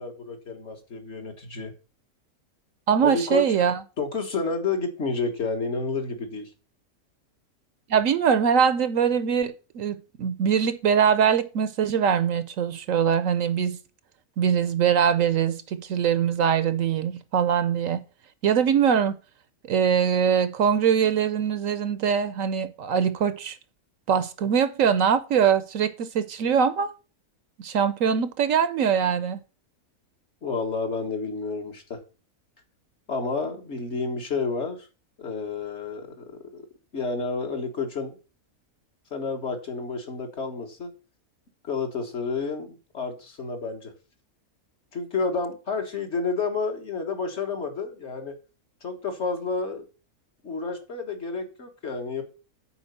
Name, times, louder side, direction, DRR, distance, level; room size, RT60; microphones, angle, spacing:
voice 1, 0.0-1.7 3.0-3.4 4.0-6.5 30.4-32.0 33.1-34.8 35.2-36.6 36.9-38.1 39.1-40.9 41.6-43.9 44.9-48.3 48.8-49.9 50.4-52.2, left 4 dB, 50° left, 1.8 m, -30 dB
voice 2, 2.9-3.8 7.9-13.8 14.4-18.0 18.4-19.2 19.7-23.6 24.1-26.9 27.6-29.4, right 7 dB, 65° right, 1.0 m, -22 dB
8.0 x 4.8 x 6.7 m
omnidirectional pair, 1.6 m